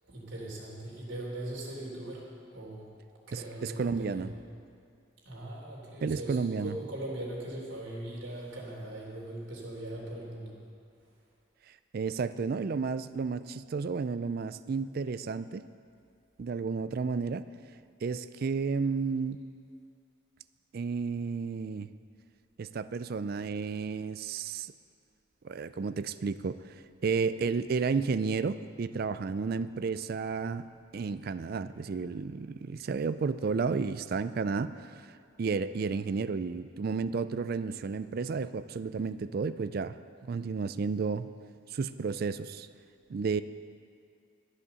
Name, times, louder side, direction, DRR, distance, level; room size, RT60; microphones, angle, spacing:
voice 1, 0.0-2.9 3.3-4.3 5.2-10.6, right 1 dB, 65° right, -4 dB, 3.2 m, -40 dB
voice 2, 3.3-4.3 6.0-6.7 11.9-15.6 16.4-17.4 18.0-19.4 20.7-21.9 22.6-24.7 25.4-30.7 30.9-40.0 40.2-41.3 41.7-42.7 43.1-43.4, right 5 dB, 45° right, 14 dB, 0.3 m, -32 dB
12.0 x 8.2 x 7.0 m, 2.4 s
head